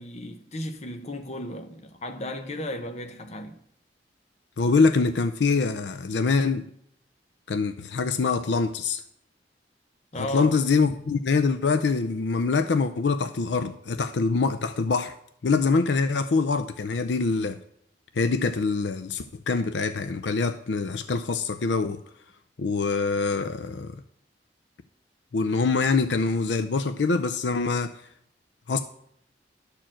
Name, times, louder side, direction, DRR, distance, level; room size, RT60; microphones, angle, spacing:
voice 1, 0.0-3.6 10.1-10.5, left 1 dB, 40° left, 0.8 m, -35 dB
voice 2, 4.6-6.7 7.5-9.0 10.2-15.1 15.4-17.6 18.2-22.0 22.6-23.9 25.3-27.9 28.7-28.8, left 4 dB, 85° left, 0.5 m, -24 dB
11.5 x 4.5 x 7.5 m
head